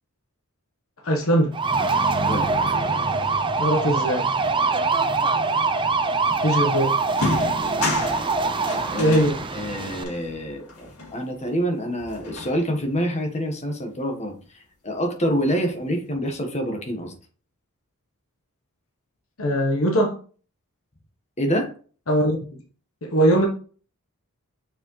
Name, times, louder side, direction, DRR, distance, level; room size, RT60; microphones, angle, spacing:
voice 1, 1.0-1.6 3.6-4.3 6.4-7.0 9.0-9.4 19.4-20.2 22.1-22.4 23.0-23.5, right 1 dB, 65° left, 1.2 m, -20 dB
sound 1, 1.5-10.0, right 4 dB, 20° right, 0.5 m, -23 dB
voice 2, 2.2-2.5 8.9-9.2 9.5-17.1 21.4-21.7, equal, 30° left, 1.4 m, -27 dB
sound 2, 6.5-6.6 7.1-11.7 12.0-13.0, left 2 dB, 85° left, 2.3 m, -32 dB
6.5 x 4.7 x 3.2 m
head